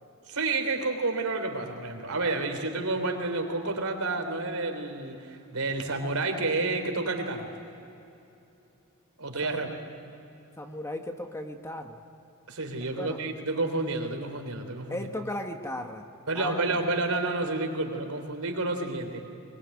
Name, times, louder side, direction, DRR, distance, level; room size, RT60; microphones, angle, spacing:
voice 1, 0.3-7.5 9.2-9.8 12.5-15.1 16.3-19.2, right 3 dB, 90° right, 5 dB, 3.5 m, -30 dB
voice 2, 10.6-12.0 13.0-13.2 14.9-16.6, left 1 dB, 15° left, 4 dB, 1.3 m, -36 dB
22.5 x 22.5 x 9.7 m, 2.8 s
head